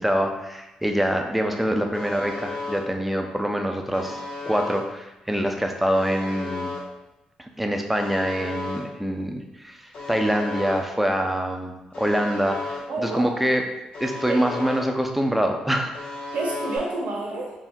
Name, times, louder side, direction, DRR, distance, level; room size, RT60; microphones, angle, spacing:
voice 1, 0.0-6.7 7.4-13.7 14.0-15.9, equal, 5° right, 3 dB, 0.5 m, -25 dB
Alarm, 1.9-2.8 3.9-4.8 5.9-6.8 7.9-8.8 9.9-10.8 11.9-12.8 13.9-14.8 15.9-16.8, left 3 dB, 60° left, 1.4 m, -34 dB
voice 2, 12.9-13.4 14.3-14.4 16.3-17.5, right 2 dB, 70° right, -2 dB, 1.2 m, -29 dB
3.6 x 2.1 x 4.2 m, 1.0 s
supercardioid pair, 65°, 2 cm